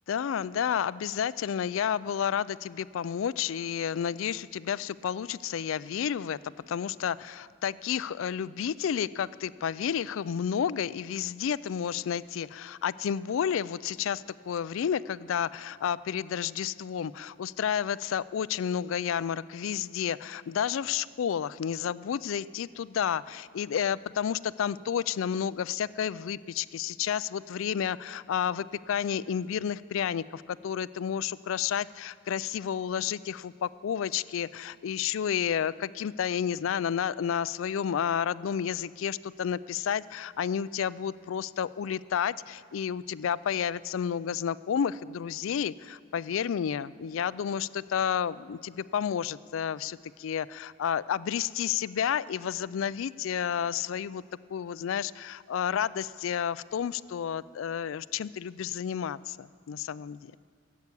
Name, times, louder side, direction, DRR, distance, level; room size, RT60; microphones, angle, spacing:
voice 1, 0.1-54.2 54.5-60.2, left 8 dB, 75° left, 18 dB, 0.3 m, -31 dB
16.0 x 8.3 x 8.3 m, 2.2 s
head